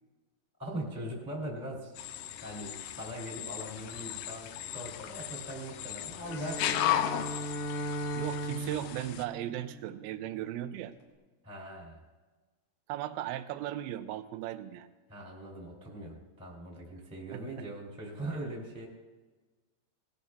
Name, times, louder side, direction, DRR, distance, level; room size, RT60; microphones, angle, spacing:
voice 1, 0.6-2.1 2.4-7.0 11.4-12.0 15.1-18.9, right 1 dB, ahead, -2 dB, 1.6 m, -41 dB
sound 1, 2.0-9.2, left 11 dB, 90° left, 1.9 m, -36 dB
Bowed string instrument, 6.2-10.4, right 1 dB, 60° left, 2.4 m, -38 dB
voice 2, 8.2-10.9 12.9-14.9 17.3-17.7, right 13 dB, 80° right, 9 dB, 2.4 m, -37 dB
18.5 x 13.0 x 2.3 m, 1.3 s
omnidirectional pair, 4.4 m